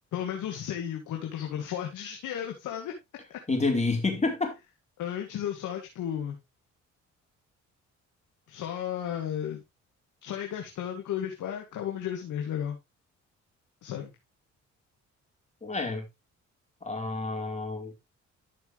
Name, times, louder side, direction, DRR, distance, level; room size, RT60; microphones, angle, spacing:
voice 1, 0.1-2.9 3.3-3.4 5.0-6.4 8.5-9.6 10.2-12.8 13.8-14.1, left 9 dB, 80° left, 2.3 m, -34 dB
voice 2, 3.5-4.6 15.6-16.0 16.8-17.9, left 3 dB, 25° left, 4.1 m, -28 dB
13.0 x 6.3 x 3.1 m
cardioid pair, 90°, 30 cm